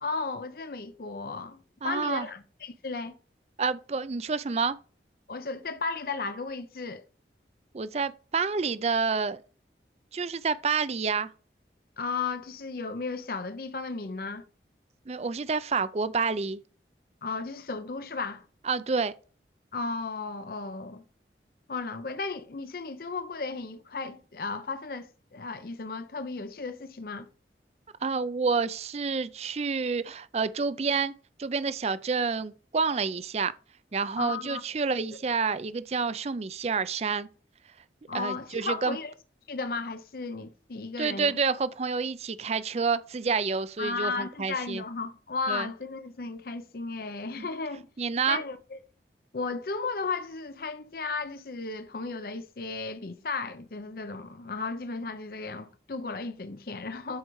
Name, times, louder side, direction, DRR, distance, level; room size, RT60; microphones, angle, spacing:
voice 1, 0.0-3.2 5.3-7.1 12.0-14.4 17.2-18.5 19.7-21.0 21.7-27.3 34.2-34.6 38.1-39.1 39.5-41.3 43.8-47.9 48.3-48.8 49.3-57.2, left 4 dB, 55° left, 0.6 m, -34 dB
voice 2, 1.8-2.3 3.6-4.8 7.7-9.4 10.1-11.3 15.1-16.6 18.6-19.1 28.0-31.1 31.4-33.5 33.9-37.3 38.1-39.0 41.0-44.8 45.5-45.7 48.0-48.4, right 5 dB, 35° right, 0.4 m, -28 dB
12.5 x 4.7 x 3.1 m
head